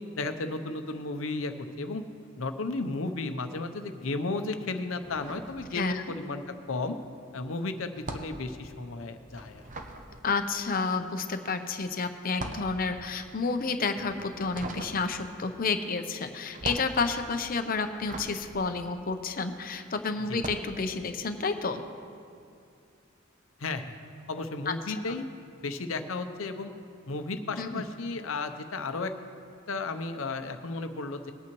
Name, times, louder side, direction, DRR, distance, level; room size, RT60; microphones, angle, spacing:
voice 1, 0.2-2.0 2.4-7.0 7.3-9.6 20.3-20.4 23.6-24.0 24.3-25.2 25.6-26.7 27.1-29.1 29.7-31.3, left 3 dB, 85° left, 8 dB, 0.8 m, -34 dB
sound 1, 5.0-6.3 6.5-19.7 20.2-20.8, right 2 dB, 40° right, 0.8 m, -42 dB
voice 2, 10.2-21.8 24.7-24.8 25.1-25.2 27.6-27.8, left 4 dB, 45° left, 7 dB, 0.7 m, -30 dB
20.0 x 8.6 x 3.1 m, 2.3 s
head